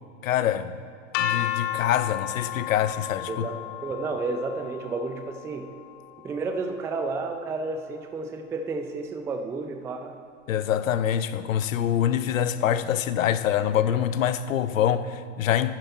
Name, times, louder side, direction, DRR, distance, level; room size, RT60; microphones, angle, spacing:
voice 1, 0.2-0.8 1.2-3.5 10.5-15.7, left 10 dB, 90° left, 0.6 m, -25 dB
sound 1, 1.1-7.1, left 12 dB, 45° left, 0.6 m, -33 dB
voice 2, 3.3-5.7 6.2-10.2, right 3 dB, 10° right, 0.3 m, -31 dB
10.5 x 9.1 x 4.4 m
hypercardioid pair, 115°, 39 cm